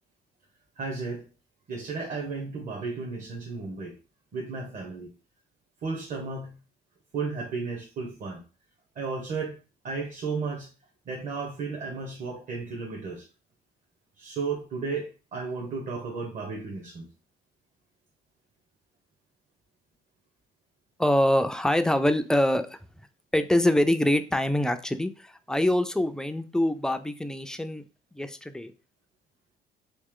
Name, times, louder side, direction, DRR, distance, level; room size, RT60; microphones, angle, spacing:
voice 1, 0.8-1.2 1.7-3.9 4.3-5.1 5.8-6.5 7.1-8.4 9.0-9.6 9.8-10.7 11.1-13.2 14.2-17.1, right 4 dB, 50° right, 0 dB, 1.0 m, -33 dB
voice 2, 21.0-22.8 23.3-27.8 28.1-28.7, left 1 dB, 5° left, 8 dB, 0.3 m, -24 dB
3.2 x 2.9 x 3.7 m, 0.34 s
cardioid pair, 110°, 17 cm